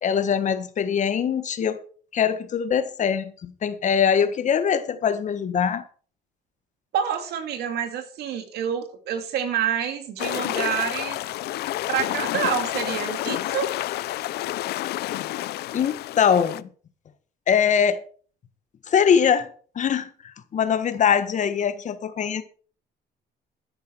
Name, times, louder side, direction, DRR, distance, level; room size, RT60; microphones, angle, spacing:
voice 1, 0.0-1.8 2.1-5.8 15.7-16.7 17.5-18.0 18.9-19.5 19.7-20.1 20.5-22.4, left 7 dB, 45° left, 1.5 m, -22 dB
voice 2, 6.9-11.2 11.9-13.7, right 8 dB, 75° right, 2.3 m, -27 dB
pope sailing wake, 10.2-16.6, left 15 dB, 75° left, 0.6 m, -29 dB
12.5 x 10.5 x 4.6 m
cardioid pair, 110°, 17 cm